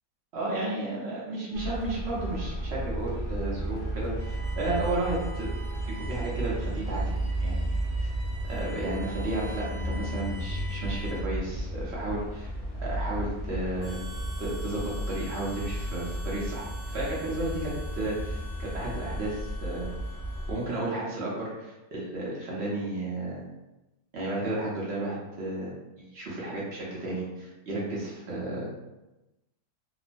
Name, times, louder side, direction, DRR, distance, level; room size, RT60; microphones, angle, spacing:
voice 1, 0.3-5.5 6.0-7.1 7.4-7.6 8.0-8.1 8.4-12.5 12.8-14.0 14.4-19.9 20.5-23.4 24.1-25.7 26.0-28.7, right 2 dB, 50° right, -6 dB, 0.9 m, -33 dB
Traffic noise roadway noise, 1.5-20.5, right 1 dB, 50° left, 0.6 m, -33 dB
Bowed string instrument, 4.2-11.4, right 2 dB, 75° right, 0.5 m, -47 dB
Harmonica, 13.8-21.1, left 2 dB, 70° left, 1.2 m, -47 dB
3.0 x 2.0 x 2.5 m, 1.0 s
omnidirectional pair, 1.7 m